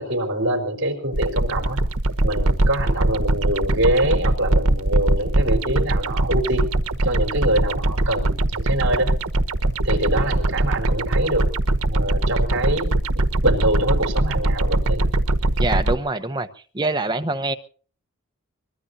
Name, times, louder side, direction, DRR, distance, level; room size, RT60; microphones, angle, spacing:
voice 1, 0.0-1.8 2.2-6.6 7.0-9.1 9.8-11.5 11.8-13.0 13.4-15.1, right 1 dB, 55° right, 4 dB, 4.2 m, -24 dB
sound 1, 1.1-16.0, right 1 dB, 80° right, 1.2 m, -21 dB
voice 2, 15.6-16.5 16.7-17.5, right 2 dB, 20° right, 8 dB, 0.9 m, -24 dB
23.5 x 21.5 x 2.7 m, 0.41 s
head